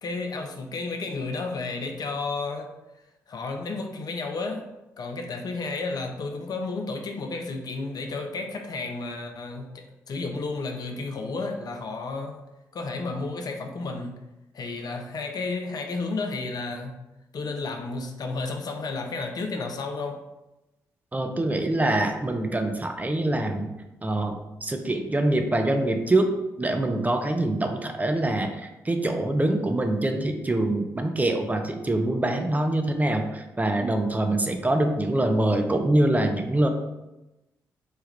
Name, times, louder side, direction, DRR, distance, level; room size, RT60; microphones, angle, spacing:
voice 1, 0.0-2.7 3.3-4.7 5.0-12.4 12.7-14.2 14.5-17.0 17.3-20.2, left 3 dB, 50° left, 4 dB, 0.5 m, -32 dB
voice 2, 21.1-23.7 24.0-26.3 26.6-36.7, right 1 dB, 20° right, 5 dB, 0.4 m, -24 dB
3.2 x 2.3 x 3.1 m, 0.98 s
hypercardioid pair, 40°, 8 cm